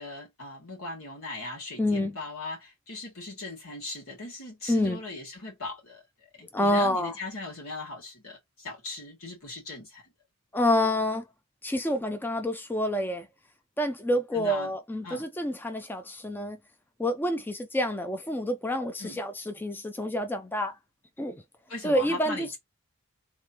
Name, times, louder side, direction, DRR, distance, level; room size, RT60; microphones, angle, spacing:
voice 1, 0.0-6.0 6.4-10.1 14.3-14.7 15.0-15.3 19.0-19.2 21.7-22.6, left 2 dB, 80° left, 2.5 m, -39 dB
voice 2, 1.8-2.2 4.7-5.0 6.5-7.1 10.5-11.3 11.6-13.3 13.8-16.6 17.0-20.8 21.2-21.4 21.8-22.6, left 1 dB, 10° left, 0.4 m, -28 dB
3.7 x 3.3 x 2.9 m
head